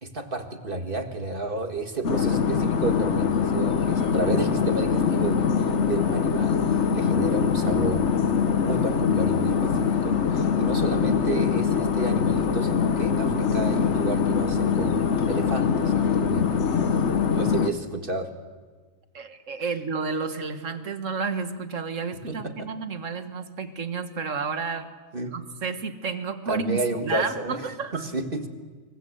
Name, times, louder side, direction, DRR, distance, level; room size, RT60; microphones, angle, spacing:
voice 1, 0.0-6.6 6.9-8.1 8.6-15.0 15.3-16.5 17.3-18.3 22.3-22.6 25.1-25.3 26.5-27.6 27.9-28.5, right 2 dB, 45° right, 5 dB, 2.1 m, -31 dB
sound 1, 2.0-17.7, left 6 dB, 60° left, 1.4 m, -23 dB
voice 2, 19.1-24.9 25.2-28.0, right 4 dB, 70° right, 8 dB, 1.9 m, -31 dB
27.0 x 23.5 x 8.0 m, 1.4 s
omnidirectional pair, 1.3 m